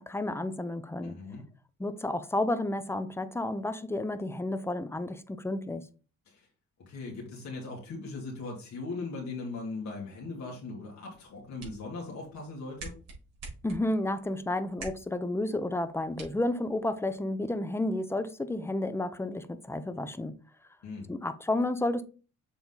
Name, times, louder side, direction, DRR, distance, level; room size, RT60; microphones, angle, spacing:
voice 1, 0.0-1.2 1.8-5.9 13.6-20.4 21.1-22.0, left 1 dB, 10° left, 0.7 m, -31 dB
voice 2, 1.0-1.5 6.3-6.5 6.8-12.9 20.8-21.1, left 3 dB, 65° left, 2.2 m, -39 dB
sound 1, 11.3-17.2, right 3 dB, 60° right, 3.8 m, -49 dB
7.1 x 3.9 x 3.9 m
cardioid pair, 90°, 30 cm